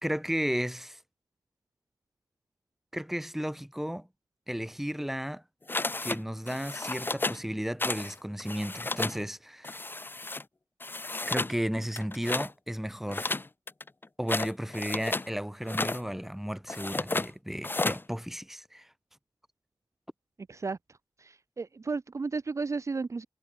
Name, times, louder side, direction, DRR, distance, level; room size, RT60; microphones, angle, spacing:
voice 1, 0.0-1.0 2.9-4.1 4.5-5.4 6.0-9.8 11.3-13.4 14.2-18.9, equal, 5° right, 2.3 m, -34 dB
sound 1, 5.7-6.2 6.5-7.4 7.8-8.1 8.4-9.2 9.6-10.4 10.8-11.6 11.9-12.5 13.1-15.3 15.6-16.0 16.7-17.3 17.6-18.0, left 2 dB, 30° left, 1.1 m, -32 dB
voice 2, 21.2-23.3, right 4 dB, 40° right, 0.7 m, -33 dB
wide cardioid pair, 100°, 7 cm